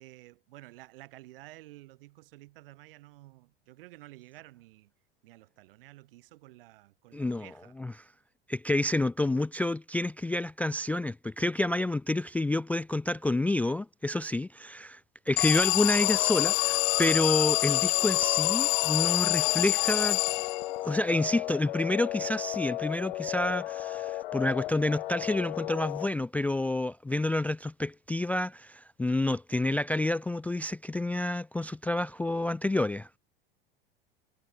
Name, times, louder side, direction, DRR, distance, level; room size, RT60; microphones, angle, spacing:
voice 1, 0.0-4.9 5.2-7.8 8.7-8.9, right 18 dB, 65° right, 6.2 m, -52 dB
voice 2, 7.1-7.5 7.8-7.9 8.5-15.0 15.3-20.2 20.8-33.2, left 2 dB, 5° left, 0.4 m, -29 dB
Alarm, 15.4-20.9, left 40 dB or more, 50° left, 0.7 m, -26 dB
sound 1, 15.9-26.1, left 15 dB, 70° left, 4.2 m, -35 dB
hypercardioid pair, 80°, 30 cm